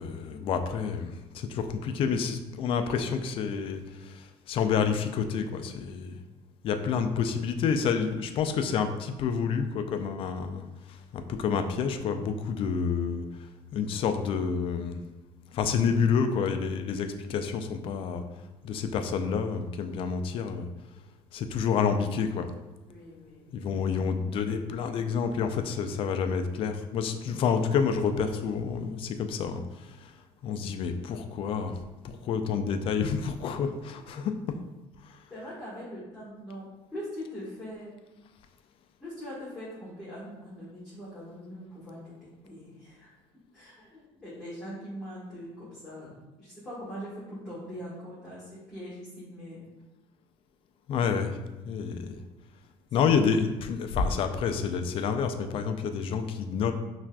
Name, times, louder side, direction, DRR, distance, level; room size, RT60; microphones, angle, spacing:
voice 1, 0.0-6.2 6.6-10.7 11.1-13.2 13.7-15.0 15.5-18.2 18.6-20.7 21.3-22.5 23.5-30.1 30.4-31.8 32.0-34.2 50.9-51.3 51.6-52.2 52.9-56.7, left 6 dB, 45° left, 7 dB, 0.3 m, -29 dB
voice 2, 22.9-23.7 35.3-36.6 36.9-37.9 39.0-43.1 43.5-49.6 52.9-53.0, equal, 5° left, -12 dB, 1.4 m, -42 dB
5.8 x 2.5 x 2.2 m, 1.1 s
cardioid pair, 135°, 12 cm